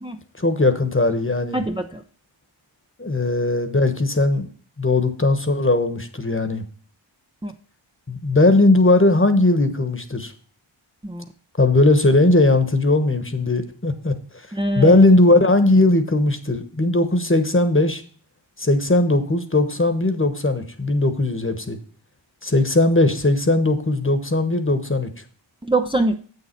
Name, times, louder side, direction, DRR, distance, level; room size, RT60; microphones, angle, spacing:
voice 1, 0.4-1.6 3.0-4.5 4.8-6.6 8.1-10.3 11.6-14.1 14.7-18.0 18.6-21.8 22.4-25.1, left 2 dB, 25° left, 9 dB, 1.2 m, -18 dB
voice 2, 1.5-2.0 7.4-7.5 11.0-11.2 14.5-15.0 25.6-26.2, right 2 dB, 10° right, 5 dB, 0.6 m, -23 dB
8.2 x 6.8 x 4.5 m, 0.43 s
wide cardioid pair, 45°, 50 cm